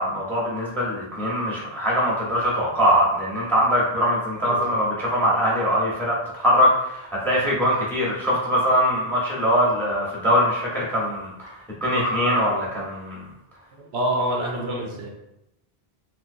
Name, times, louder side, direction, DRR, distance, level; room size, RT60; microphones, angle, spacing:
voice 1, 0.0-11.5 11.8-13.2, equal, ahead, -5 dB, 0.9 m, -22 dB
voice 2, 13.7-15.1, right 1 dB, 85° right, 0 dB, 1.0 m, -27 dB
3.3 x 3.1 x 2.6 m, 0.86 s
omnidirectional pair, 1.0 m